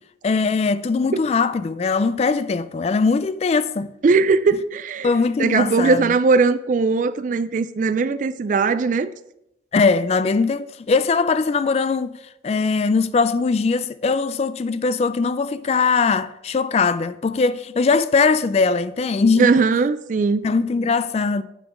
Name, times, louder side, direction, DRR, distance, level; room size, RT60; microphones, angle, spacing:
voice 1, 0.2-3.9 5.0-6.1 9.7-12.2 12.4-19.5 20.4-21.4, left 4 dB, 35° left, 0.3 m, -20 dB
voice 2, 4.0-5.1 5.4-9.1 19.4-20.5, right 4 dB, 45° right, 0.3 m, -19 dB
8.8 x 4.1 x 7.1 m
head